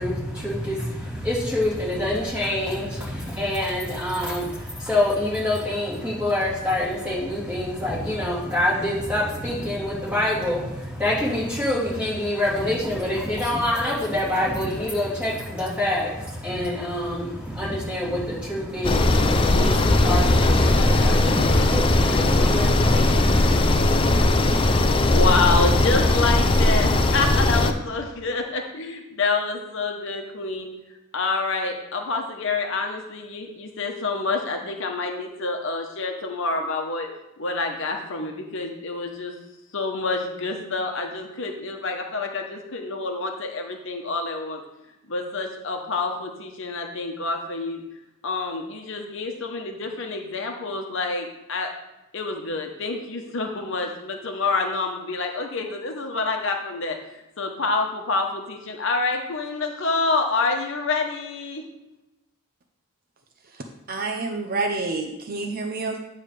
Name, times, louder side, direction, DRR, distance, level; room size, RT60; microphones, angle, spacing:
voice 1, 0.0-23.8, left 1 dB, 5° right, -8 dB, 3.1 m, -26 dB
sound 1, 18.8-27.7, left 2 dB, 25° left, 0.5 m, -19 dB
voice 2, 25.0-30.7 31.1-37.1 37.4-39.3 39.7-44.6 45.1-47.8 48.2-51.7 52.1-57.0 57.4-61.6, left 3 dB, 60° left, 3 dB, 1.0 m, -27 dB
voice 3, 63.9-66.0, right 3 dB, 45° right, 3 dB, 0.7 m, -28 dB
9.4 x 3.3 x 6.7 m, 0.95 s
head